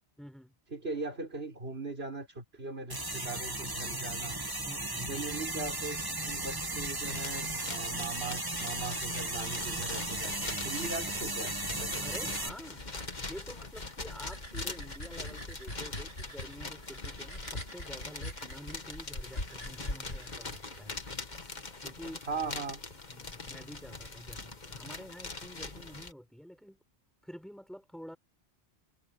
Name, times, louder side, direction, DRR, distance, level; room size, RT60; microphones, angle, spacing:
voice 1, 0.2-0.5 4.6-5.4 12.0-12.8 13.2-22.6 23.1-26.8 27.2-28.2, equal, ahead, 4.8 m, -48 dB
voice 2, 0.7-4.4 5.0-6.0 6.3-12.0 22.3-22.8, right 3 dB, 65° right, 5.5 m, -39 dB
sound 1, 2.9-12.5, right 2 dB, 20° right, 1.8 m, -36 dB
sound 2, 7.1-26.1, left 3 dB, 40° left, 1.8 m, -43 dB
sound 3, 12.3-21.2, left 1 dB, 65° left, 7.2 m, -43 dB
omnidirectional pair, 1.1 m